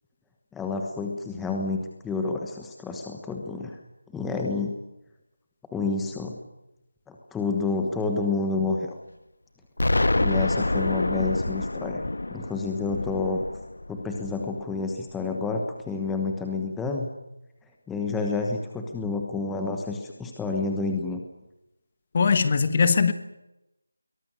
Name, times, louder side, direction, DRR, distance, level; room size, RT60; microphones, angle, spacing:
voice 1, 0.5-3.8 4.1-4.7 5.7-6.4 7.1-8.9 10.2-13.4 13.9-17.1 17.9-21.2, left 3 dB, 5° left, 2 dB, 1.2 m, -29 dB
Explosion, 9.8-14.6, left 2 dB, 80° left, 1.3 m, -27 dB
voice 2, 22.1-23.1, left 5 dB, 25° left, 12 dB, 1.4 m, -20 dB
22.5 x 19.0 x 9.7 m, 0.91 s
figure-of-eight pair, 175°, 0 cm